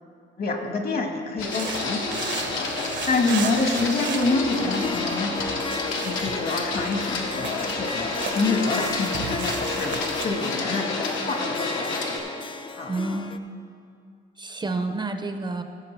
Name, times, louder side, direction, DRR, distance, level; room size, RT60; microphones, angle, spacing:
voice 1, 0.4-2.1 2.5-2.7 3.1-5.3 6.0-12.0 12.8-12.9, left 3 dB, 50° left, 4 dB, 1.4 m, -27 dB
Printer, 1.4-12.2, left 3 dB, 80° left, 1.4 m, -30 dB
sound 1, 1.4-10.3, right 7 dB, 65° right, 0.9 m, -36 dB
Harp, 4.3-13.4, left 4 dB, 25° left, 0.5 m, -34 dB
voice 2, 12.9-13.4 14.4-15.6, right 3 dB, 20° right, 6 dB, 0.6 m, -29 dB
16.0 x 7.1 x 3.3 m, 2.4 s
cardioid pair, 90°, 20 cm